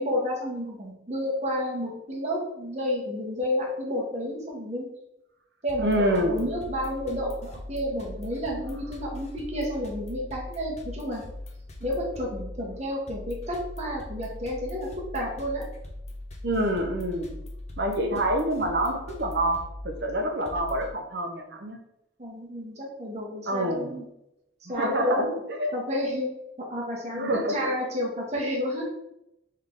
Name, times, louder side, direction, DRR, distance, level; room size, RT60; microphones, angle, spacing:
voice 1, 0.0-4.9 5.6-11.2 11.8-15.7 18.1-18.2 22.2-24.1 24.7-25.4 25.7-26.3 26.6-28.8, left 1 dB, 35° right, -3 dB, 1.1 m, -30 dB
sound 1, 5.7-20.9, left 1 dB, 35° left, 0.6 m, -40 dB
voice 2, 5.8-6.4 16.4-17.3 17.8-21.8 23.5-23.9 24.7-25.3 25.6-25.7 27.1-27.6, right 1 dB, 55° right, 3 dB, 0.7 m, -26 dB
3.6 x 3.2 x 3.7 m, 0.84 s
head